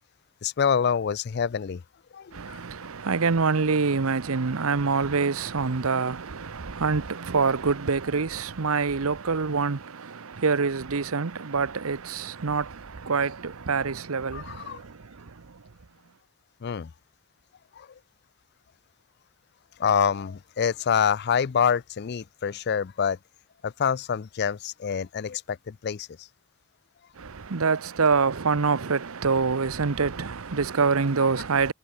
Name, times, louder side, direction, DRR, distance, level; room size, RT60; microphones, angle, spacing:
voice 1, 0.4-1.8 2.1-2.6 14.3-14.8 16.6-16.9 17.8-17.9 19.8-23.2 23.6-26.3, left 7 dB, 45° left, 0.4 m, -26 dB
voice 2, 2.3-15.2 27.2-31.7, right 4 dB, 70° right, 0.8 m, -26 dB
head